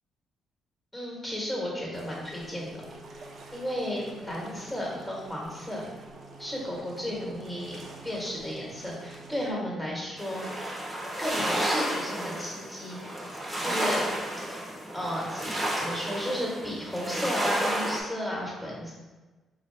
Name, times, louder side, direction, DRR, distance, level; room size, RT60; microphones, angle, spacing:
voice 1, 0.9-2.7 3.1-5.8 6.4-10.4 11.2-13.0 13.6-14.1 14.5-14.6 14.9-18.9, equal, 15° left, -4 dB, 1.5 m, -34 dB
sound 1, 1.9-9.5, right 3 dB, 55° right, 0.5 m, -47 dB
sound 2, 10.2-18.0, right 1 dB, 5° right, 0.9 m, -31 dB
3.7 x 2.8 x 3.3 m, 1.2 s
cardioid pair, 90°, 0 cm